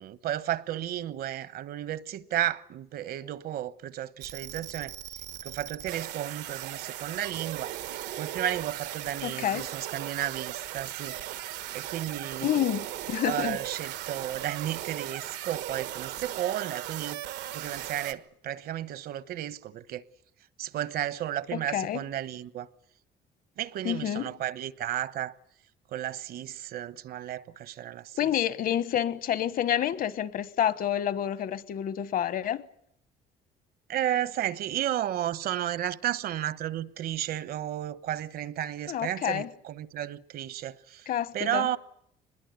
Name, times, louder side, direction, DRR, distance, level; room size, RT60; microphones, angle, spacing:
voice 1, 0.0-4.9 5.4-7.7 8.2-12.5 13.2-17.2 17.5-20.0 20.6-22.7 23.6-25.3 25.9-28.2 33.9-41.1 41.3-41.8, right 11 dB, 65° right, 1.2 m, -33 dB
sound 1, 4.2-18.1, right 13 dB, 90° right, 1.5 m, -38 dB
voice 2, 9.2-9.7 12.4-13.6 21.5-22.0 23.8-24.3 28.2-32.6 38.9-39.5 41.1-41.7, left 10 dB, 55° left, 1.3 m, -28 dB
24.0 x 21.0 x 9.5 m
cardioid pair, 110°, 17 cm